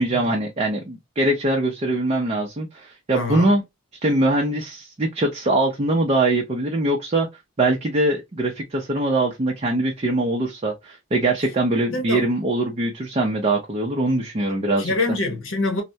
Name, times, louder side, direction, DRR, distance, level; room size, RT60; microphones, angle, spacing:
voice 1, 0.0-3.6 4.0-7.3 7.6-14.9, right 2 dB, 30° right, 0.5 m, -22 dB
voice 2, 3.1-3.5 11.9-12.2 14.8-15.8, left 2 dB, 65° left, 0.8 m, -25 dB
3.2 x 2.0 x 2.6 m
head